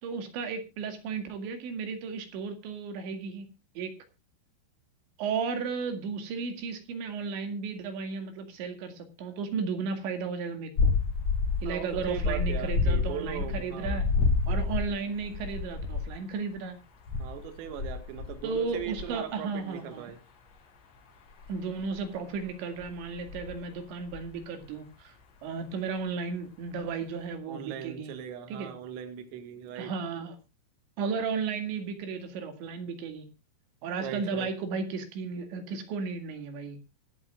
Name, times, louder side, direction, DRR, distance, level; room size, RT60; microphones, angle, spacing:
voice 1, 0.0-3.5 3.8-4.0 5.2-10.9 11.6-14.1 14.5-16.8 18.4-20.1 21.5-25.1 25.4-28.1 28.5-28.7 29.8-30.4 31.0-33.3 33.8-36.8, right 5 dB, 65° right, 7 dB, 4.2 m, -34 dB
sound 1, 10.8-16.2 17.1-19.1 21.4-22.0 22.8-23.7 24.0-24.4, left 4 dB, 50° left, 2.2 m, -29 dB
voice 2, 11.7-14.0 17.2-20.2 27.5-30.3 34.0-34.5, right 9 dB, 80° right, 8 dB, 4.3 m, -39 dB
24.5 x 8.8 x 2.4 m, 0.26 s
omnidirectional pair, 5.8 m